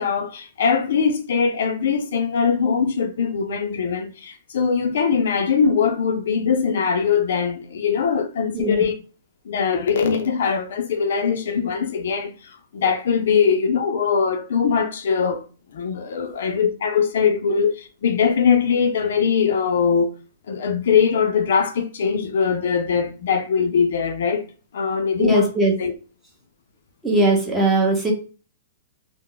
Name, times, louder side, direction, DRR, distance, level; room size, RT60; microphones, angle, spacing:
voice 1, 0.0-8.9 9.5-15.4 15.7-20.1 20.5-24.4 24.7-25.5 25.8-25.9, left 6 dB, 70° left, 0.4 m, -21 dB
voice 2, 25.2-25.7 27.0-28.1, right 2 dB, 10° right, 0.7 m, -19 dB
2.2 x 2.0 x 3.7 m
hypercardioid pair, 155°, 0 cm